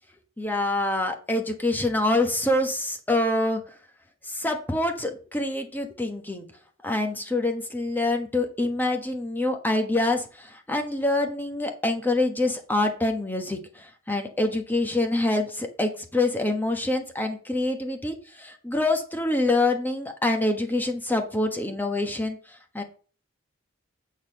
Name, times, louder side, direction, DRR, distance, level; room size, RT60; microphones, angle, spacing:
voice 1, 0.4-3.6 4.2-6.5 6.8-22.8, left 2 dB, 10° left, 3 dB, 1.3 m, -26 dB
8.8 x 4.0 x 6.5 m, 0.38 s
head